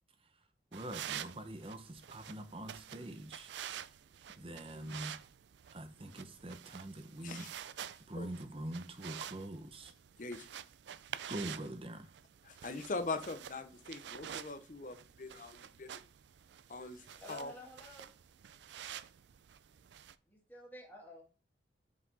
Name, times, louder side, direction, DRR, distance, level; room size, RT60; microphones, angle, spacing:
voice 1, 0.7-3.5 4.4-5.2 5.7-7.5 8.1-9.9 11.3-12.1, right 1 dB, 30° right, 0.7 m, -44 dB
sound 1, 0.7-20.2, right 10 dB, 75° right, 0.4 m, -49 dB
voice 2, 10.2-10.6 12.4-16.0 16.7-17.5, left 3 dB, 45° left, 0.6 m, -42 dB
voice 3, 16.9-18.1 20.3-21.2, left 1 dB, 10° left, 1.7 m, -51 dB
5.7 x 5.0 x 4.0 m
head